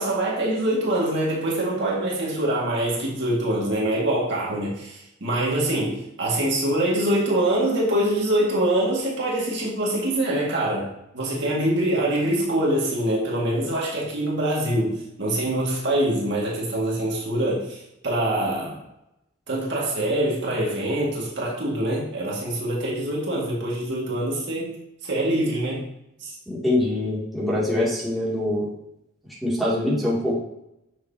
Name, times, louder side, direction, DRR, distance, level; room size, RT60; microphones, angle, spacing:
voice 1, 0.0-18.8 19.5-25.9 26.2-26.3, right 1 dB, 55° right, -4 dB, 2.0 m, -24 dB
voice 2, 26.5-28.7 29.4-30.4, left 1 dB, ahead, -9 dB, 2.5 m, -24 dB
8.9 x 6.6 x 2.8 m, 0.83 s
head